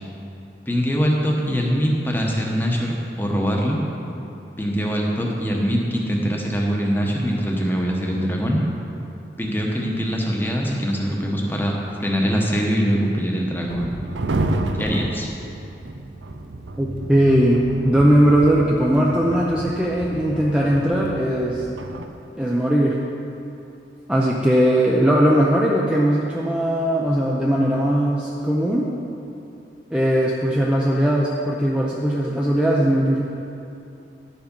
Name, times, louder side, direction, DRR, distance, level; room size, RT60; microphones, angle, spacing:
voice 1, 0.7-3.8 4.6-8.6 9.4-13.9 14.8-15.3, equal, 10° left, -1 dB, 1.0 m, -23 dB
sound 1, 13.7-22.1, right 2 dB, 85° right, 0.7 m, -30 dB
voice 2, 16.8-21.7 22.4-23.0 24.1-28.9 29.9-33.2, equal, 5° right, -4 dB, 0.6 m, -19 dB
10.5 x 7.2 x 5.3 m, 2.8 s
head